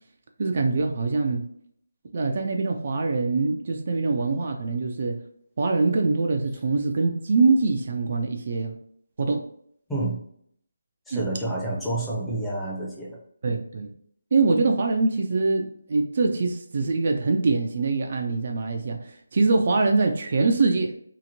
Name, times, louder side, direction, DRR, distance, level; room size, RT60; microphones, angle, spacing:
voice 1, 0.4-1.5 2.1-5.2 5.6-8.8 9.2-9.4 11.1-11.2 13.4-13.9 14.3-20.9, right 3 dB, 50° right, 3 dB, 0.3 m, -23 dB
voice 2, 9.9-10.2 11.1-13.2, right 2 dB, 5° left, -7 dB, 0.6 m, -29 dB
2.8 x 2.5 x 2.6 m, 0.66 s
figure-of-eight pair, 165°, 0 cm